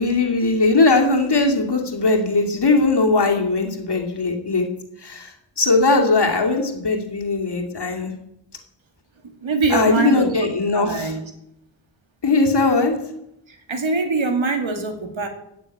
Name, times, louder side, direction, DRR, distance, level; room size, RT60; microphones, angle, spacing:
voice 1, 0.0-4.7 5.0-8.1 9.7-11.1 12.2-13.0, left 3 dB, 55° left, 2 dB, 2.6 m, -19 dB
voice 2, 9.2-11.2 13.5-15.3, right 4 dB, 80° right, 5 dB, 2.6 m, -24 dB
16.0 x 6.9 x 9.1 m, 0.82 s
wide cardioid pair, 90°, 47 cm